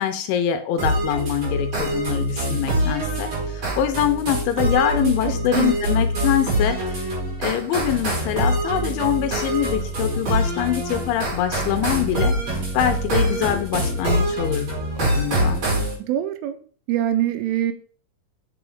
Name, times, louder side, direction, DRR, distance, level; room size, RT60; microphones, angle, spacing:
voice 1, 0.0-7.1 7.4-15.6, left 11 dB, 85° left, 7 dB, 3.0 m, -24 dB
sound 1, 0.8-15.9, right 1 dB, 35° right, 5.4 m, -24 dB
voice 2, 5.0-5.8 16.0-16.6 16.9-17.7, right 12 dB, 90° right, 9 dB, 3.3 m, -24 dB
8.1 x 6.9 x 3.6 m, 0.42 s
omnidirectional pair, 5.7 m